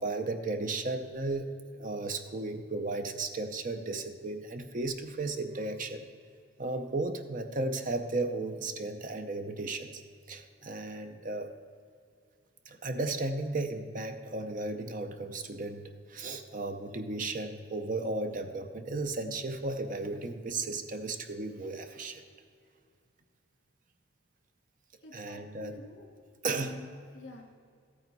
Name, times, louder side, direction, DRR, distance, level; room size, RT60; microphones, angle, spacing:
voice 1, 0.0-1.5 1.7-6.1 6.6-10.0 10.3-11.5 12.7-22.2 25.1-25.8 26.4-26.8, right 2 dB, 40° right, 7 dB, 0.6 m, -35 dB
voice 2, 25.0-26.1 26.5-27.6, left 2 dB, 70° left, 1 dB, 1.9 m, -48 dB
14.0 x 8.9 x 4.1 m, 2.2 s
head